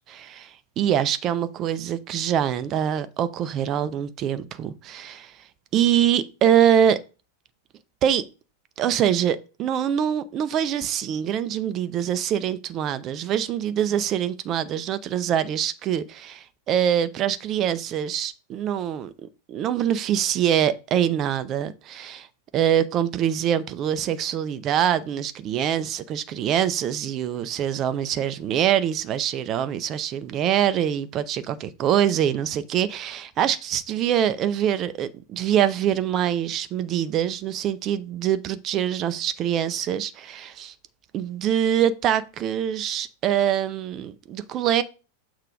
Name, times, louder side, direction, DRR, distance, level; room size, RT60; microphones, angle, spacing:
voice 1, 0.0-5.3 5.7-7.0 8.0-8.3 8.8-22.3 22.5-40.7 41.1-44.8, right 10 dB, 35° right, 0.6 m, -24 dB
6.7 x 3.7 x 4.8 m
figure-of-eight pair, 90°, 0 cm